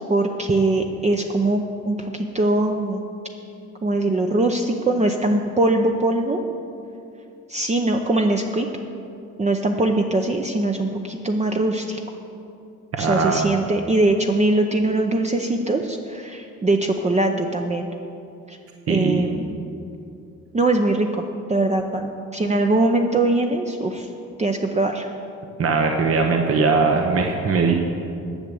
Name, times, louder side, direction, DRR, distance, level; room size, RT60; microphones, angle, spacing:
voice 1, 0.1-3.0 3.8-6.4 7.5-8.7 9.4-12.0 13.0-17.9 18.5-18.6 18.9-19.6 20.5-21.2 21.5-24.1 24.4-25.1, right 2 dB, 25° right, 3 dB, 0.7 m, -21 dB
voice 2, 12.9-13.6 18.9-19.3 25.6-27.8, right 4 dB, 50° right, 3 dB, 1.0 m, -20 dB
10.5 x 6.9 x 7.8 m, 2.7 s
cardioid pair, 90°, 30 cm